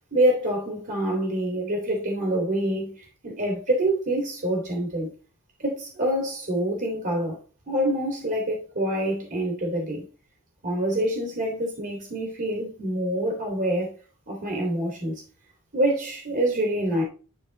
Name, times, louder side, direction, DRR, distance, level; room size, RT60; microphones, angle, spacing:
voice 1, 0.1-5.1 5.6-7.4 7.7-10.1 10.6-14.0 14.3-15.2 15.7-17.0, right 1 dB, 45° right, 2.6 m, -26 dB
11.0 x 4.3 x 3.2 m
head